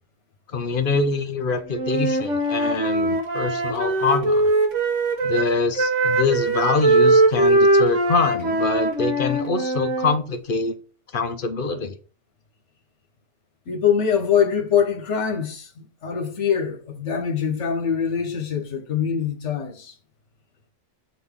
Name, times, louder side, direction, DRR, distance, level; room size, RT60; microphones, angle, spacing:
voice 1, 0.5-4.5 5.2-10.7 11.1-11.9, left 4 dB, 55° left, 0.7 m, -24 dB
Wind instrument woodwind instrument, 1.8-5.5 5.8-10.1, right 2 dB, 75° right, 1.5 m, -21 dB
voice 2, 13.7-15.7 16.0-19.9, left 7 dB, 70° left, 1.4 m, -23 dB
7.8 x 4.2 x 3.6 m
omnidirectional pair, 1.3 m